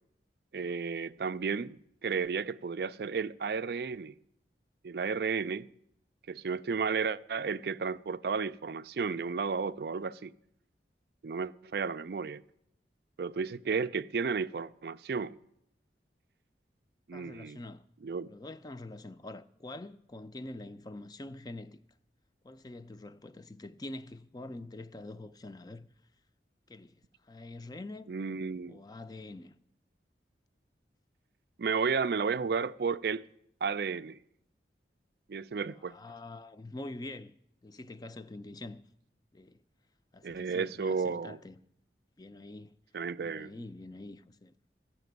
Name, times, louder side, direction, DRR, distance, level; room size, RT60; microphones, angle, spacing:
voice 1, 0.5-4.2 4.8-5.7 6.3-10.3 11.2-12.4 13.2-15.4 17.1-17.6 18.0-18.3 28.1-28.8 31.6-33.3 33.6-34.2 35.3-35.9 40.2-41.4 42.9-43.5, right 5 dB, 60° right, 0.4 m, -33 dB
voice 2, 17.1-17.8 18.3-21.8 22.4-25.9 26.7-26.9 27.2-28.1 28.7-29.6 35.8-37.3 37.6-38.8 39.3-39.6 40.1-41.6 42.2-42.7 43.2-44.5, left 2 dB, 20° left, 0.4 m, -45 dB
14.0 x 5.9 x 9.2 m
head